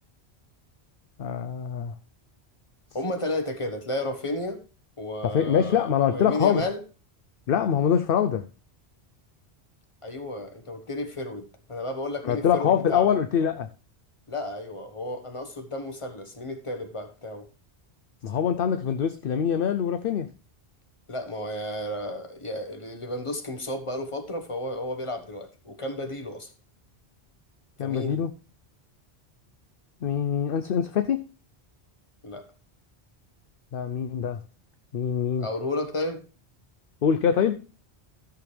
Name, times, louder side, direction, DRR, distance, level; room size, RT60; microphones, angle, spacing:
voice 1, 1.2-1.9 5.2-6.6 7.5-8.5 12.2-13.7 18.2-20.3 27.8-28.3 30.0-31.3 33.7-34.4 34.9-35.5 37.0-37.6, left 8 dB, 60° left, 0.8 m, -24 dB
voice 2, 2.9-4.6 5.0-6.8 10.0-13.1 14.3-17.5 21.1-26.5 27.8-28.2 32.2-32.5 35.4-36.2, left 1 dB, 30° left, 1.4 m, -32 dB
14.0 x 7.0 x 3.3 m
omnidirectional pair, 1.1 m